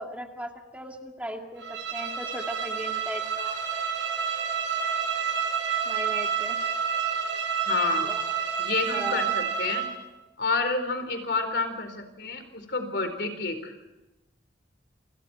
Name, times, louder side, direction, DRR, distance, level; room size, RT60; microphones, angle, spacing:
voice 1, 0.0-3.6 5.9-6.6 8.0-8.3 8.9-9.2, right 1 dB, 10° right, 2 dB, 2.2 m, -37 dB
Bowed string instrument, 1.6-10.0, right 7 dB, 70° right, 7.1 m, -29 dB
voice 2, 7.6-8.1 8.6-9.9 10.4-13.7, left 4 dB, 60° left, 7 dB, 4.3 m, -29 dB
29.5 x 27.5 x 4.5 m, 1.0 s
head